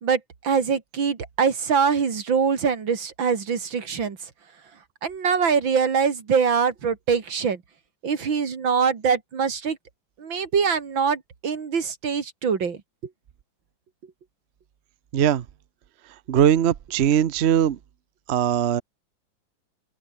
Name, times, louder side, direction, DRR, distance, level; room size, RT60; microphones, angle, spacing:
voice 1, 0.0-4.2 5.0-7.6 8.0-9.8 10.2-12.8, right 6 dB, 80° right, 3.1 m, -23 dB
voice 2, 15.1-15.4 16.3-17.8 18.3-18.8, right 9 dB, 55° right, 0.7 m, -20 dB
omnidirectional pair, 2.1 m